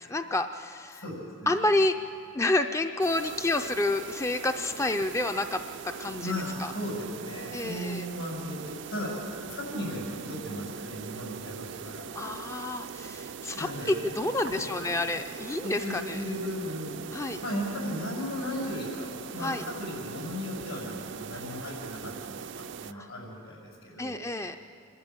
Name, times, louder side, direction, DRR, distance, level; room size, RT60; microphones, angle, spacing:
voice 1, 0.0-1.0 1.5-2.0 2.3-6.3 6.6-6.7 7.5-8.0 12.1-16.2 17.1-17.4 19.4-19.6 22.9-23.1 24.0-24.6, left 2 dB, 15° left, 7 dB, 0.4 m, -29 dB
voice 2, 0.9-1.6 6.2-12.1 13.5-14.0 14.5-14.7 15.6-24.2, left 1 dB, 85° left, -3 dB, 7.0 m, -36 dB
sound 1, 3.0-22.9, right 6 dB, 60° right, 0.4 m, -41 dB
26.0 x 12.0 x 9.0 m, 2.4 s
head